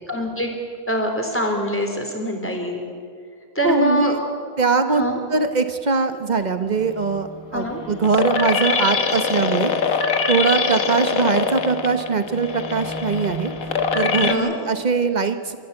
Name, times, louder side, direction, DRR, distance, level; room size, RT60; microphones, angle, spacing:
voice 1, 0.1-0.5 0.9-2.8 3.5-4.1 4.9-5.2 7.5-7.8 14.2-14.5, equal, 10° left, 2 dB, 3.2 m, -24 dB
voice 2, 3.6-4.2 4.6-5.0 5.3-10.0 10.3-13.5 13.9-15.6, right 4 dB, 35° right, 9 dB, 1.1 m, -21 dB
sound 1, 6.8-14.3, left 5 dB, 80° left, 1.8 m, -23 dB
28.0 x 13.5 x 8.0 m, 2.2 s
omnidirectional pair, 1.4 m